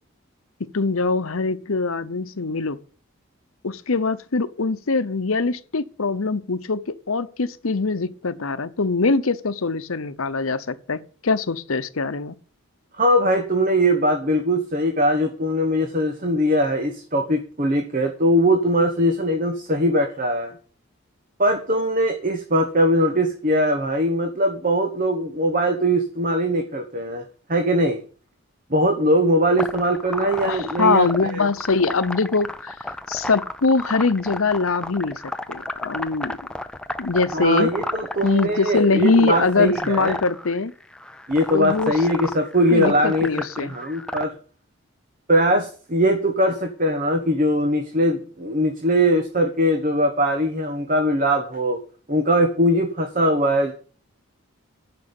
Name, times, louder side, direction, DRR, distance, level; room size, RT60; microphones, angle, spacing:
voice 1, 0.6-2.8 3.6-12.3 30.3-32.8 33.1-35.2 35.5-36.4 37.0-37.7 38.2-40.7 41.5-41.9 42.7-43.8, left 4 dB, 80° left, 0.9 m, -23 dB
voice 2, 13.0-20.5 21.4-28.0 28.7-31.5 37.3-40.2 41.3-44.3 45.3-51.8 52.1-53.7, equal, 40° right, 1.2 m, -21 dB
sound 1, 29.6-44.2, left 1 dB, 5° left, 0.5 m, -33 dB
10.5 x 6.3 x 8.8 m
head